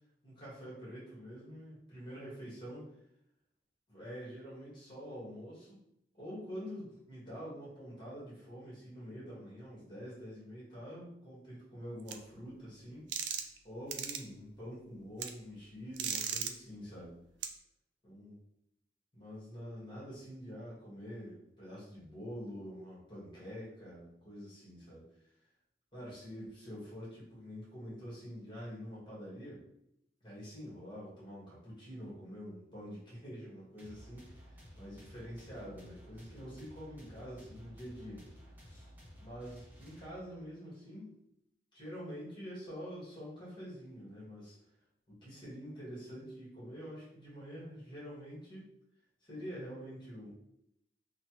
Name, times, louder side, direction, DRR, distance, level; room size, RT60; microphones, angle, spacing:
voice 1, 0.2-2.9 3.9-5.8 6.1-13.1 13.6-17.2 18.0-18.4 19.1-25.1 25.9-29.6 30.2-38.2 38.6-38.9 39.2-41.2 41.7-44.5 45.1-48.7 49.3-50.3, equal, 25° left, -7 dB, 1.4 m, -46 dB
sound 1, 12.1-12.2 13.1-13.6 13.9-14.2 15.2-15.3 16.0-16.5 17.4-17.5, right 8 dB, 90° right, 0.3 m, -36 dB
sound 2, 33.8-40.5, equal, 10° right, 0.6 m, -54 dB
3.1 x 2.2 x 2.9 m, 0.80 s
head